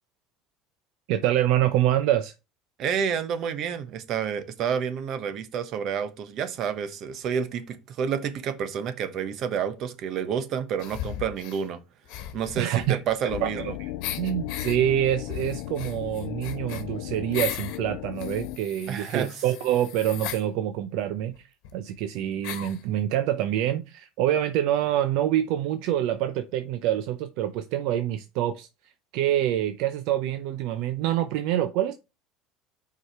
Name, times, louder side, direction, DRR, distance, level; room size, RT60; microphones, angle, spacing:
voice 1, 1.1-2.3 12.6-13.0 13.4-13.9 14.2-21.5 21.7-32.0, right 12 dB, 75° right, 0.6 m, -26 dB
voice 2, 2.8-11.8 12.3-13.7 18.9-19.4, right 7 dB, 50° right, 1.1 m, -29 dB
sound 1, 10.8-11.6 12.1-13.7 14.0-14.8 15.3-17.8 18.2-20.4 21.3-21.4 21.6-21.7 22.4-22.8, left 11 dB, 75° left, 1.1 m, -37 dB
sound 2, 13.3-18.6, left 14 dB, 90° left, 0.3 m, -36 dB
6.3 x 4.8 x 4.7 m
cardioid pair, 135°, 0 cm